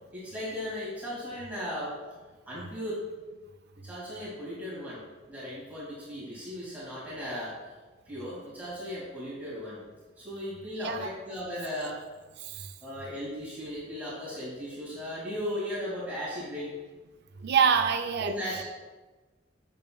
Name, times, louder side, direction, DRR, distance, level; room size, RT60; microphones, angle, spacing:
voice 1, 0.1-2.0 2.5-3.0 3.8-5.0 5.3-7.7 8.1-9.8 10.2-12.0 12.8-16.7 18.2-18.6, equal, 10° right, -9 dB, 2.1 m, -36 dB
voice 2, 10.8-11.1 12.4-12.7 17.4-18.6, right 6 dB, 60° right, 7 dB, 0.4 m, -26 dB
8.4 x 6.6 x 2.3 m, 1.3 s
head